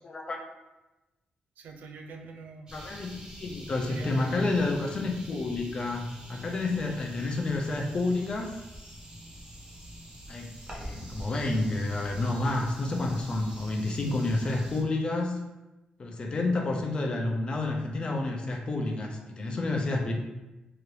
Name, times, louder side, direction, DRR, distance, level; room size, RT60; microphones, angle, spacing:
voice 1, 0.0-0.4 2.7-6.0 6.3-8.5 10.3-15.4 16.0-20.1, left 2 dB, 35° left, 2 dB, 0.5 m, -29 dB
voice 2, 1.6-2.8 3.9-4.7, right 4 dB, 80° right, 3 dB, 0.4 m, -45 dB
sound 1, 2.7-14.8, equal, 25° right, 0.7 m, -44 dB
2.9 x 2.5 x 3.1 m, 1.0 s
wide cardioid pair, 140°, 3 cm